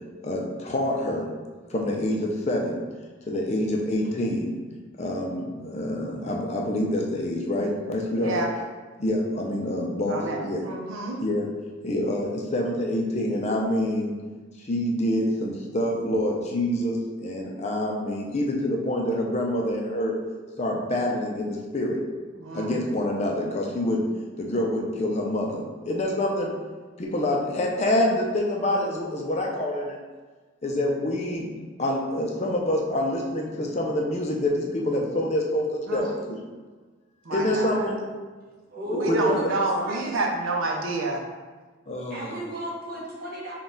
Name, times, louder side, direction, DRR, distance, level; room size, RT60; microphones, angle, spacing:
voice 1, 0.2-1.3 1.7-2.8 3.3-4.5 5.0-8.4 9.0-10.6 11.2-11.5 11.8-14.2 14.7-20.2 20.6-22.0 22.5-24.1 24.4-26.5 27.0-30.0 30.6-31.5 31.8-36.4 37.3-38.0 38.9-39.4 41.9-42.3, left 1 dB, 35° left, 0 dB, 0.4 m, -26 dB
voice 2, 8.2-8.5 10.1-11.2 22.4-22.7 35.9-36.1 37.3-37.9 39.0-41.2, right 2 dB, 80° right, 0 dB, 0.6 m, -29 dB
voice 3, 38.7-40.2 42.1-43.5, equal, 45° right, -4 dB, 0.9 m, -32 dB
3.9 x 2.3 x 3.8 m, 1.4 s
head